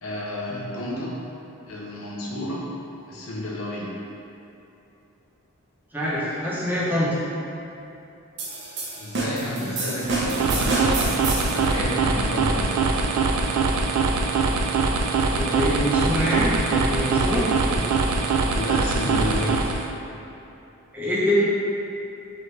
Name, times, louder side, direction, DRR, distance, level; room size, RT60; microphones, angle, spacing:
voice 1, 0.0-1.2 1.7-2.7 3.1-4.0 9.0-11.2 11.5-13.1 17.7-18.0 18.5-19.9, left 1 dB, 65° left, -3 dB, 0.7 m, -31 dB
voice 2, 5.9-7.1 15.3-17.5 20.9-21.4, equal, 10° right, -9 dB, 0.7 m, -24 dB
sound 1, 8.4-11.7, right 2 dB, 50° right, 0.6 m, -28 dB
sound 2, 10.0-19.9, right 4 dB, 90° right, 0.3 m, -23 dB
3.8 x 3.2 x 3.2 m, 2.8 s
head